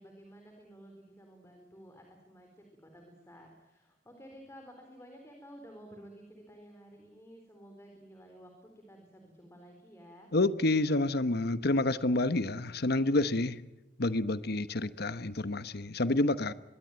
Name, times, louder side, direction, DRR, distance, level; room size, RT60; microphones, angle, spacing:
voice 1, 0.0-8.5 8.9-10.3, equal, 15° left, 3 dB, 4.1 m, -53 dB
voice 2, 10.3-13.6 14.0-16.5, left 2 dB, 60° left, 13 dB, 1.1 m, -28 dB
25.0 x 21.5 x 9.1 m, 0.94 s
head